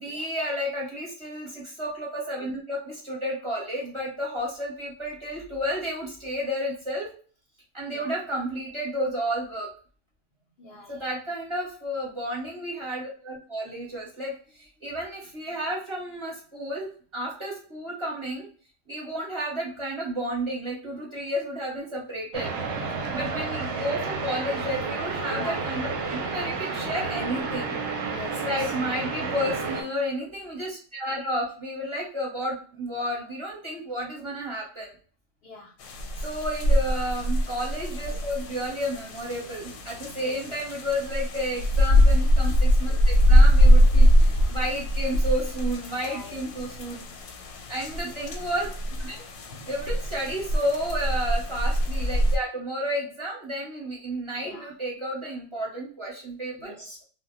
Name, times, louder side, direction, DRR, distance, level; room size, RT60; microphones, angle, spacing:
voice 1, 0.0-7.1 7.7-9.7 10.9-18.5 18.9-22.5 23.1-27.7 28.4-34.9 36.2-47.0 47.7-48.7 49.0-49.2 49.7-56.7, equal, 30° right, -5 dB, 0.7 m, -31 dB
voice 2, 7.9-8.2 10.6-11.1 23.2-23.5 25.3-25.7 28.1-28.7 35.4-35.7 40.2-40.6 44.3-44.6 46.0-46.5 49.5-49.7 54.4-54.8 56.6-57.0, left 2 dB, 60° left, -3 dB, 0.7 m, -44 dB
sound 1, 22.3-29.8, right 4 dB, 65° right, 0.8 m, -31 dB
sound 2, 35.8-52.4, equal, 85° left, 1.0 m, -22 dB
2.1 x 2.1 x 3.6 m, 0.41 s
omnidirectional pair, 1.4 m